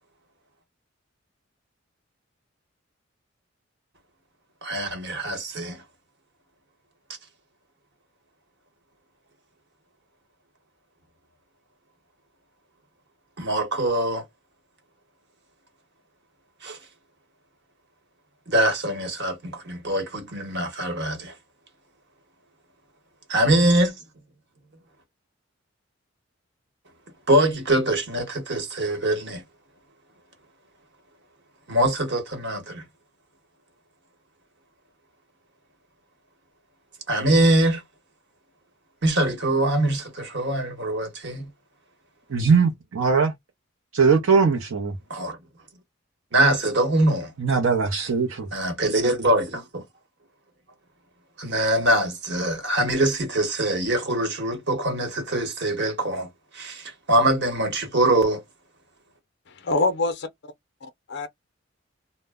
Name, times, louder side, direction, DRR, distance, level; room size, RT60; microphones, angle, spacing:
voice 1, 4.6-5.8 13.4-14.2 16.6-16.8 18.5-21.3 23.3-24.0 27.3-29.4 31.7-32.8 37.1-37.8 39.0-41.5 45.1-45.4 46.3-47.3 48.5-49.8 51.4-56.3 56.5-58.4, right 1 dB, 55° right, 1.0 m, -23 dB
voice 2, 42.3-43.3 43.9-44.9 47.4-48.5, right 5 dB, 90° right, 0.6 m, -20 dB
voice 3, 59.5-60.5 60.8-61.3, left 2 dB, 55° left, 0.5 m, -26 dB
2.1 x 2.1 x 3.4 m
head